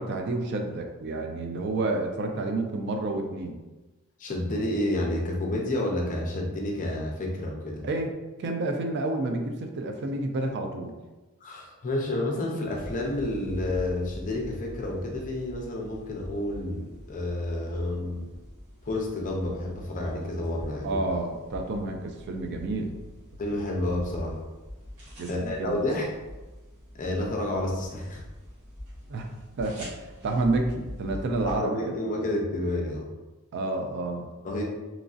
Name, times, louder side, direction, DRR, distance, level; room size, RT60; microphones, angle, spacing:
voice 1, 0.0-3.6 7.8-8.1 8.4-10.9 20.8-22.9 25.2-25.9 29.1-31.9 33.5-34.3, right 2 dB, 50° right, 4 dB, 0.4 m, -30 dB
voice 2, 4.2-7.8 11.4-18.3 18.8-21.0 23.4-24.4 25.3-26.1 26.9-28.2 31.4-33.1 34.4-34.6, left 1 dB, 35° left, -1 dB, 0.5 m, -30 dB
sound 1, 12.8-31.6, equal, 80° right, 1.3 m, -44 dB
2.9 x 2.5 x 2.4 m, 1.1 s
head